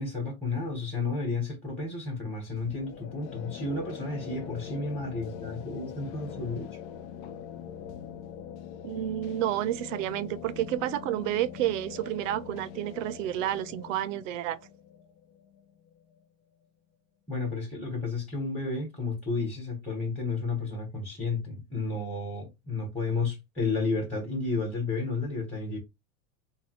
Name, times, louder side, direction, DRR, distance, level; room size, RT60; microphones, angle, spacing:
voice 1, 0.0-6.7 17.3-25.8, left 3 dB, 5° left, 1.2 m, -32 dB
sound 1, 2.6-16.2, left 8 dB, 55° left, 0.6 m, -43 dB
voice 2, 8.8-14.6, right 13 dB, 65° right, 0.5 m, -30 dB
3.2 x 2.3 x 3.0 m
supercardioid pair, 140°, 41 cm